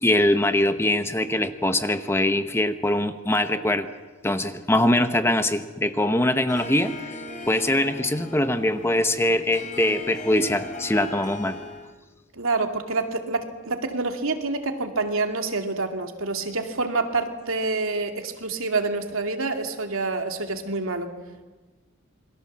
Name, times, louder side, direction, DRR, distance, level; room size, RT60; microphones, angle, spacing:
voice 1, 0.0-3.9 4.2-6.9 7.5-11.6, left 1 dB, 10° left, 9 dB, 0.9 m, -22 dB
Harp, 6.5-12.0, left 2 dB, 35° left, 3.0 m, -38 dB
voice 2, 12.3-21.1, right 3 dB, 75° right, 5 dB, 2.4 m, -27 dB
28.0 x 21.5 x 7.4 m, 1.3 s
head